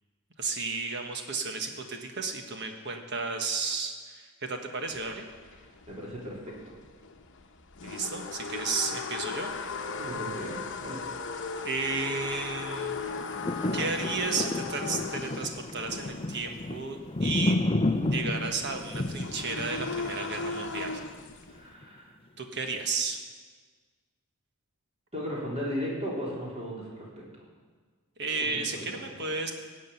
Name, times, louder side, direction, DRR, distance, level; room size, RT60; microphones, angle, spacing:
voice 1, 0.4-5.3 7.8-9.5 11.6-13.0 13.7-17.6 18.1-21.0 22.4-23.2 28.2-29.5, right 4 dB, 50° right, 4 dB, 1.5 m, -33 dB
sound 1, 4.9-21.7, left 4 dB, 55° left, 1.0 m, -38 dB
voice 2, 5.9-6.5 10.0-11.0 21.5-22.1 25.1-27.1 28.4-29.1, equal, 30° right, -5 dB, 4.0 m, -36 dB
sound 2, 13.0-21.3 21.8-21.9, left 2 dB, 25° left, 0.6 m, -31 dB
17.0 x 6.5 x 9.2 m, 1.5 s
head